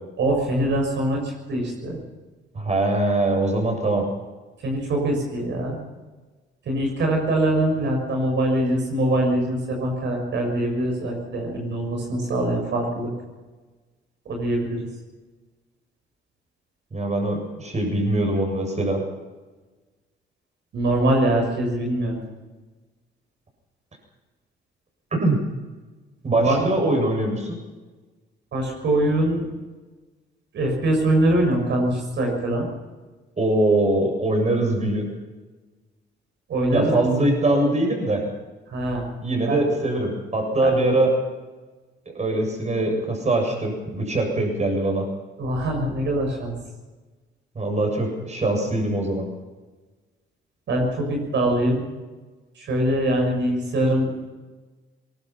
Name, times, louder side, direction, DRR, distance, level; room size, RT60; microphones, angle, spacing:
voice 1, 0.2-2.0 4.6-5.8 6.6-13.1 14.2-14.9 20.7-22.2 26.3-26.7 28.5-29.4 30.5-32.7 36.5-37.1 38.7-39.0 39.5-39.6 40.6-40.7 45.4-46.6 50.7-51.8 52.5-54.1, right 1 dB, 65° right, 1 dB, 6.6 m, -23 dB
voice 2, 2.5-4.0 16.9-19.0 25.1-25.4 26.2-27.6 33.4-35.1 36.7-38.2 39.2-41.1 42.1-45.1 47.6-49.2, right 2 dB, 35° right, 3 dB, 7.5 m, -22 dB
23.0 x 19.5 x 5.9 m, 1.3 s
cardioid pair, 90°, 20 cm